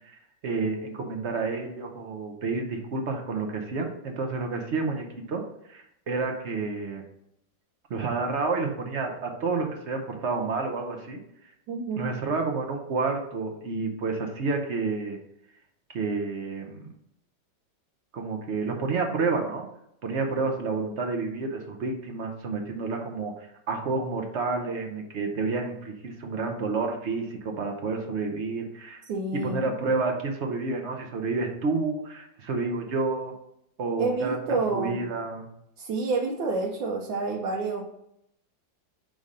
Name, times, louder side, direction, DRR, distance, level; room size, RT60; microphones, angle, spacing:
voice 1, 0.4-5.4 5.7-7.0 7.9-11.2 12.0-15.2 15.9-16.9 18.1-19.7 20.0-29.0 29.3-33.3 33.8-34.4 34.7-35.5, right 4 dB, 55° right, 3 dB, 0.8 m, -29 dB
voice 2, 11.7-12.1 29.1-29.6 34.0-35.0 35.8-37.8, right 3 dB, 85° right, -1 dB, 1.4 m, -28 dB
4.9 x 3.8 x 5.4 m, 0.76 s
omnidirectional pair, 2.0 m